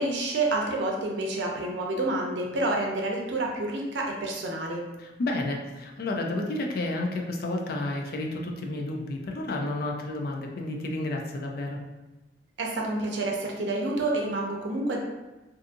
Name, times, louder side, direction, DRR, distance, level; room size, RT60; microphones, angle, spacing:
voice 1, 0.0-4.8 12.6-15.0, right 2 dB, 85° right, 0 dB, 0.5 m, -28 dB
voice 2, 5.0-11.8, left 2 dB, 60° left, 1 dB, 0.4 m, -31 dB
2.6 x 2.5 x 2.5 m, 1.1 s
head